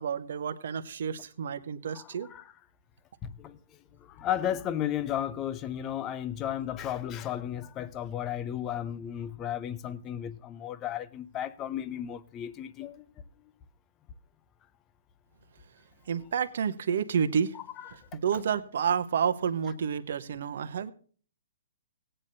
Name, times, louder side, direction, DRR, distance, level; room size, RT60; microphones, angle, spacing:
voice 1, 0.0-2.3 16.1-17.6 17.9-20.9, right 7 dB, 65° right, 0.8 m, -30 dB
voice 2, 1.9-2.4 3.2-3.6 4.0-13.0 17.9-18.0, left 10 dB, 25° left, 0.6 m, -34 dB
17.0 x 8.9 x 2.6 m
hypercardioid pair, 135°, 0 cm